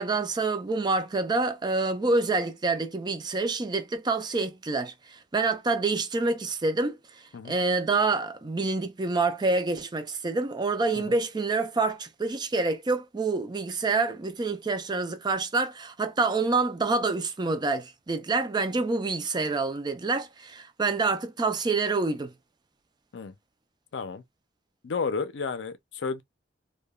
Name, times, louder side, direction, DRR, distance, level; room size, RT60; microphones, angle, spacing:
voice 1, 0.0-7.0 7.5-22.3, right 3 dB, 25° right, 0.4 m, -27 dB
voice 2, 23.9-24.2 24.8-26.2, left 4 dB, 70° left, 0.5 m, -32 dB
2.7 x 2.2 x 2.2 m
head